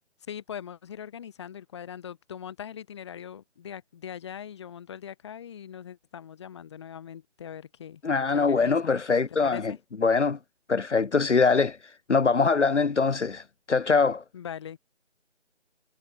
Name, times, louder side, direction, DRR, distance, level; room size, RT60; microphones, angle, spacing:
voice 1, 0.3-8.0 8.3-9.0 9.4-9.8 14.3-14.8, left 8 dB, 25° left, 3.3 m, -41 dB
voice 2, 8.0-9.7 10.0-10.4 10.7-11.8 12.1-14.2, left 4 dB, 75° left, 1.1 m, -23 dB
figure-of-eight pair, 160°, 36 cm